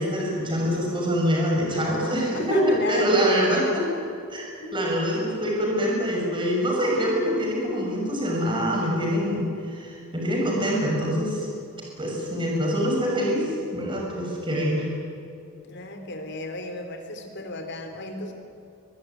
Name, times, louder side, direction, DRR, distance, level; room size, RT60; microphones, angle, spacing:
voice 1, 0.0-3.6 4.3-4.4 4.7-11.5 12.0-14.9, equal, 25° right, -2 dB, 6.6 m, -25 dB
voice 2, 1.7-3.8 15.6-18.3, left 2 dB, 55° left, 5 dB, 3.8 m, -33 dB
23.0 x 21.5 x 9.5 m, 2.5 s
head